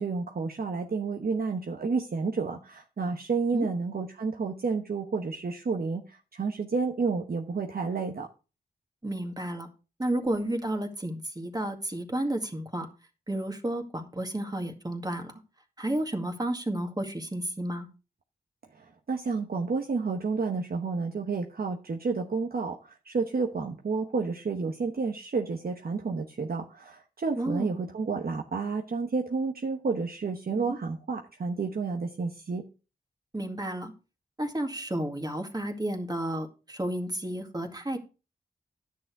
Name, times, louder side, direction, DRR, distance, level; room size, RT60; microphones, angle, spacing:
voice 1, 0.0-8.3 18.7-32.6, right 4 dB, 65° right, 3 dB, 1.0 m, -30 dB
voice 2, 9.0-9.7 10.0-12.9 13.3-15.3 15.8-17.9 27.4-27.7 33.3-33.9 34.4-38.0, right 1 dB, 25° right, 4 dB, 2.1 m, -31 dB
10.5 x 6.6 x 4.7 m, 0.32 s
cardioid pair, 45°, 17 cm